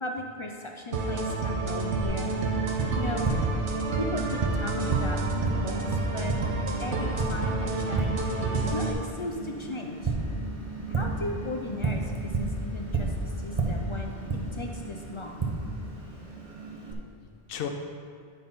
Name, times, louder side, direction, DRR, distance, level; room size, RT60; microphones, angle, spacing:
voice 1, 0.0-2.3 3.0-3.3 4.0-6.3 6.8-8.1 8.7-10.1 10.9-14.1 14.6-15.4, left 2 dB, 45° left, 2 dB, 0.4 m, -36 dB
sound 1, 0.9-8.9, right 3 dB, 90° right, 1.1 m, -29 dB
Tap, 2.0-16.9, right 3 dB, 35° right, 0.8 m, -32 dB
voice 2, 17.5-17.7, left 9 dB, 60° left, 5 dB, 0.8 m, -40 dB
8.8 x 4.2 x 5.3 m, 2.2 s
omnidirectional pair, 1.1 m